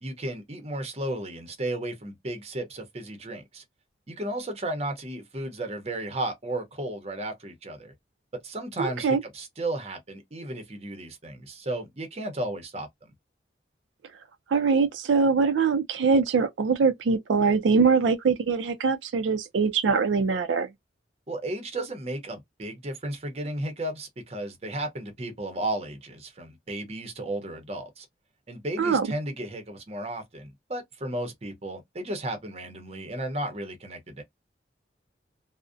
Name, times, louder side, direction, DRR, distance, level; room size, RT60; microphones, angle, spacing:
voice 1, 0.0-3.6 4.1-7.9 8.3-13.1 21.3-28.1 28.5-34.2, right 1 dB, 35° right, 0.6 m, -34 dB
voice 2, 8.8-9.2 14.5-20.7 28.8-29.1, right 5 dB, 90° right, 0.4 m, -23 dB
2.5 x 2.0 x 2.4 m
head